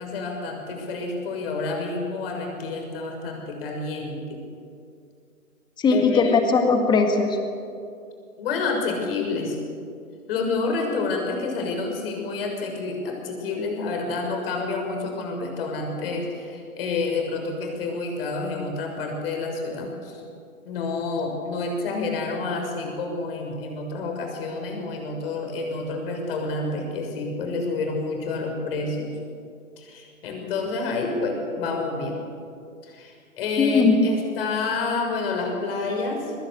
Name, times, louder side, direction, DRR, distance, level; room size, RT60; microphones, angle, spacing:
voice 1, 0.0-4.4 5.9-6.4 8.4-9.6 10.3-20.2 20.6-29.1 29.8-32.2 32.8-36.3, left 3 dB, 40° left, 2 dB, 6.6 m, -29 dB
voice 2, 5.8-7.4 33.6-34.0, left 4 dB, 10° left, 5 dB, 1.8 m, -19 dB
22.5 x 21.0 x 8.6 m, 2.4 s
hypercardioid pair, 145°, 43 cm